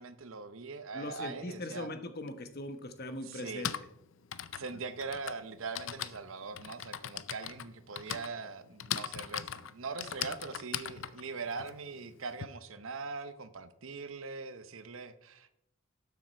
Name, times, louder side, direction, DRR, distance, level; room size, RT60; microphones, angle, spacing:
voice 1, 0.0-1.9 3.3-3.7 4.6-15.5, right 4 dB, 75° right, 12 dB, 0.8 m, -41 dB
voice 2, 0.9-3.9 4.4-4.8, left 1 dB, 50° left, 8 dB, 1.0 m, -41 dB
Typing, 2.3-2.4 3.3-12.5, left 10 dB, 65° left, 0.5 m, -40 dB
12.0 x 7.2 x 4.4 m, 0.78 s
head